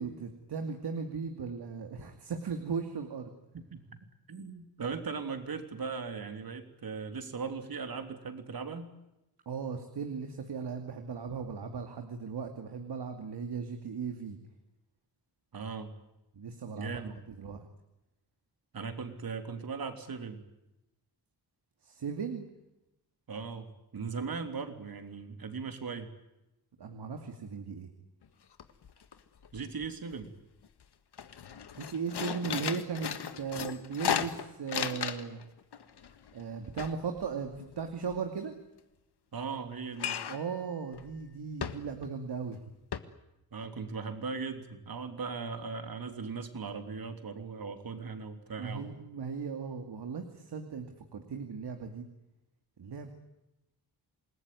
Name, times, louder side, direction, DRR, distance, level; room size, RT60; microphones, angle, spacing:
voice 1, 0.0-3.3 9.5-14.4 16.3-17.6 21.8-22.5 24.2-24.3 26.8-27.9 31.7-35.4 36.3-38.5 40.3-42.6 48.6-50.9 51.1-52.0 52.8-53.1, right 5 dB, 90° right, 5 dB, 2.6 m, -37 dB
voice 2, 4.3-8.9 15.5-15.9 16.7-17.1 18.7-20.4 23.3-26.1 29.5-30.3 39.3-40.2 43.5-49.0, right 5 dB, 60° right, 7 dB, 3.4 m, -38 dB
sound 1, 28.2-28.3 28.6-29.1 29.4-30.2 30.6-30.8 31.1-35.4 35.7-38.1 40.0-40.5 40.9-41.1 41.6-42.2 42.5-42.6 42.9-43.0, left 8 dB, 85° left, 1.8 m, -36 dB
28.0 x 20.0 x 9.5 m, 0.94 s
wide cardioid pair, 125°, 39 cm